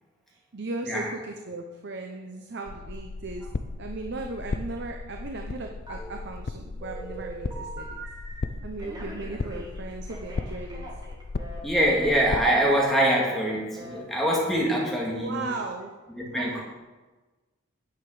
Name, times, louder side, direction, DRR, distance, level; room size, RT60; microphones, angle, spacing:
voice 1, 0.3-3.5 3.8-8.0 8.6-10.9 15.1-15.9 16.3-16.6, right 3 dB, 55° right, 3 dB, 0.8 m, -37 dB
sound 1, 2.7-12.4, left 3 dB, 50° left, 0.5 m, -36 dB
Telephone, 5.9-6.5 6.8-8.4 8.8-11.6 11.9-12.1 12.3-12.5 12.8-13.0 13.3-13.5 13.8-14.0 14.2-14.5, right 2 dB, 20° right, 2.0 m, -42 dB
voice 2, 11.6-15.5 16.2-16.6, right 1 dB, ahead, -4 dB, 2.1 m, -24 dB
9.4 x 9.0 x 4.9 m, 1.2 s
head